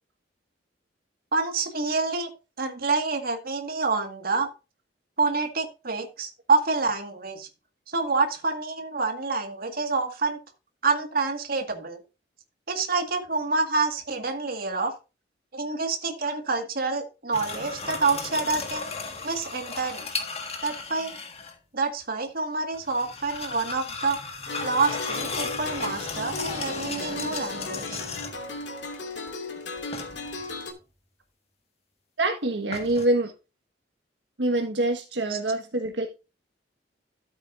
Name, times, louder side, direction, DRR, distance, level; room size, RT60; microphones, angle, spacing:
voice 1, 1.3-2.3 2.6-4.5 5.2-7.5 7.9-10.4 10.8-12.0 12.7-14.9 15.5-18.9 19.2-20.1 20.6-21.2 21.7-24.3 24.6-28.0 35.3-35.4, right 4 dB, 55° right, 1.9 m, -27 dB
sound 1, 17.3-21.6 22.7-28.5 29.9-30.5 32.7-33.1, left 4 dB, 35° left, 1.7 m, -35 dB
sound 2, 24.5-30.7, left 3 dB, 75° left, 2.4 m, -35 dB
voice 2, 32.2-33.3 34.4-36.1, right 2 dB, 75° right, 1.5 m, -25 dB
13.0 x 8.1 x 2.6 m
head